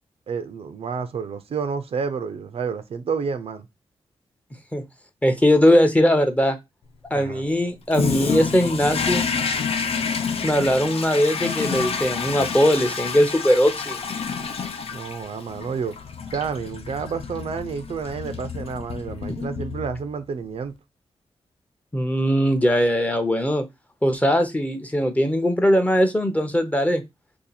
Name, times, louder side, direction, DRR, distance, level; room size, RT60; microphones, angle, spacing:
voice 1, 0.3-3.7 7.1-7.4 14.9-15.9 16.3-20.7, right 5 dB, 65° right, 0.5 m, -30 dB
voice 2, 5.2-6.6 7.1-9.2 10.4-14.0 19.3-19.4 21.9-23.6 24.0-27.0, equal, 15° left, 0.7 m, -20 dB
Toilet flush, 7.9-20.2, left 6 dB, 65° left, 0.5 m, -29 dB
2.8 x 2.5 x 3.9 m
cardioid pair, 75°, 11 cm